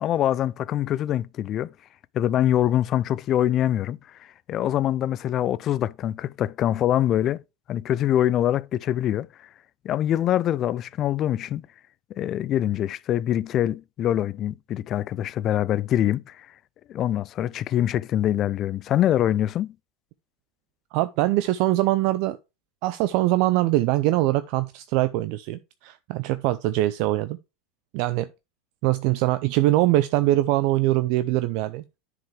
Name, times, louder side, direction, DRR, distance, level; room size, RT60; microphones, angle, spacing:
voice 1, 0.0-1.7 2.1-4.0 4.5-7.4 7.7-9.3 9.8-11.6 12.2-16.5 16.9-19.7, left 11 dB, 40° left, 0.4 m, -24 dB
voice 2, 20.9-22.4 22.8-27.4 27.9-28.3 28.8-32.0, right 16 dB, 55° right, 0.5 m, -23 dB
10.5 x 4.9 x 3.3 m
hypercardioid pair, 85°, 0 cm